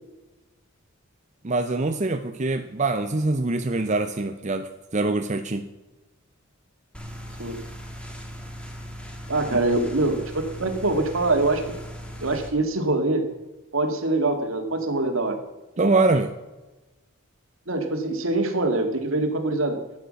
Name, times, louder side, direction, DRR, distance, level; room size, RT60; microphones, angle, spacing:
voice 1, 1.4-5.7 9.5-9.6 15.8-16.3, right 2 dB, 35° right, 6 dB, 0.7 m, -24 dB
sound 1, 6.9-12.5, equal, 5° left, 1.9 m, -38 dB
voice 2, 9.3-10.2 10.6-11.6 12.2-13.2 13.7-15.4 17.7-19.8, right 2 dB, 70° right, 5 dB, 2.1 m, -24 dB
14.0 x 9.6 x 6.4 m, 1.1 s
head